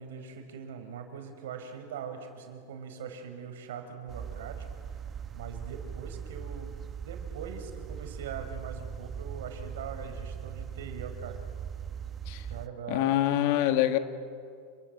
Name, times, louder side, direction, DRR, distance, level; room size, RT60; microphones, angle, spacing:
voice 1, 0.0-4.7 5.3-6.8 7.1-11.4 12.5-13.1, right 6 dB, 85° right, 6 dB, 5.2 m, -42 dB
sound 1, 4.1-12.7, right 7 dB, 20° right, 1.0 m, -40 dB
voice 2, 12.9-14.0, left 13 dB, 60° left, 8 dB, 1.9 m, -25 dB
29.0 x 24.0 x 8.0 m, 2.3 s
supercardioid pair, 145°, 0 cm